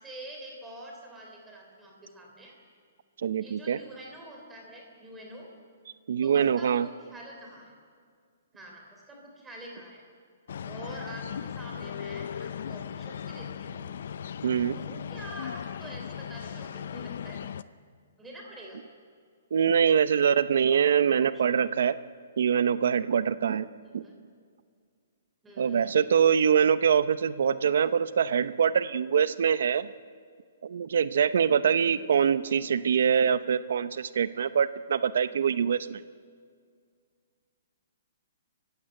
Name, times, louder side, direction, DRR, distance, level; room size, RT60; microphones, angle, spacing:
voice 1, 0.0-2.5 3.4-5.5 6.2-7.7 8.5-10.0 10.6-13.9 14.7-17.4 18.2-18.8 23.8-24.2 25.4-26.1 31.6-32.0, right 1 dB, 5° right, 0 dB, 3.3 m, -46 dB
voice 2, 3.2-3.8 6.1-6.9 14.4-14.8 19.5-22.0 22.4-23.7 23.9-24.0 25.6-29.9 30.6-36.0, right 7 dB, 55° right, 15 dB, 0.7 m, -24 dB
sound 1, 10.5-17.6, left 8 dB, 50° left, 0.6 m, -38 dB
30.0 x 15.5 x 8.9 m, 2.1 s
hypercardioid pair, 180°, 0 cm